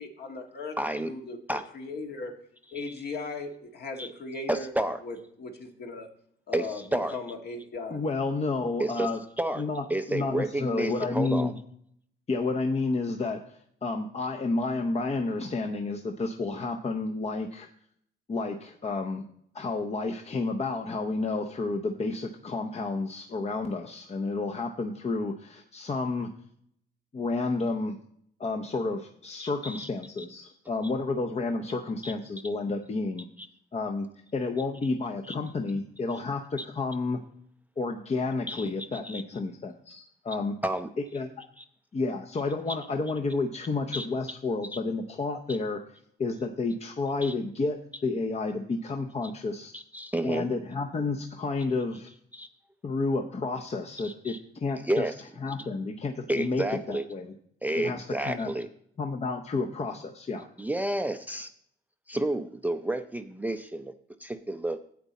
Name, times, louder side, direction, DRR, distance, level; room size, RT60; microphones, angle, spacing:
voice 1, 0.0-0.8 1.0-2.3 2.7-4.7 5.0-6.1 6.5-8.0, left 3 dB, 55° left, 2 dB, 1.7 m, -38 dB
voice 2, 0.8-1.1 1.5-1.6 2.7-2.8 4.0-4.1 4.5-5.0 6.5-7.1 8.8-9.1 9.4-9.6 9.9-11.5 29.4-29.9 32.0-32.1 33.4-33.5 35.3-35.4 36.6-36.7 38.5-39.2 40.6-40.9 41.6-41.7 43.9-44.1 47.2-47.3 49.7-50.5 52.3-52.5 54.0-54.4 54.8-55.1 56.3-57.0 57.6-58.7 60.6-61.5 62.1-63.9 64.2-64.8, right 1 dB, 10° right, 9 dB, 0.5 m, -30 dB
voice 3, 7.9-9.2 9.6-11.6 12.3-17.7 18.3-19.2 19.5-26.3 27.1-28.0 28.4-33.3 33.7-34.1 34.3-37.2 37.8-40.5 41.1-41.3 41.9-45.8 46.2-49.7 50.2-52.1 52.8-55.1 55.4-57.3 57.8-58.5 59.0-60.4, left 3 dB, 35° left, 4 dB, 0.8 m, -30 dB
9.4 x 8.2 x 4.2 m, 0.66 s
cardioid pair, 90°, 20 cm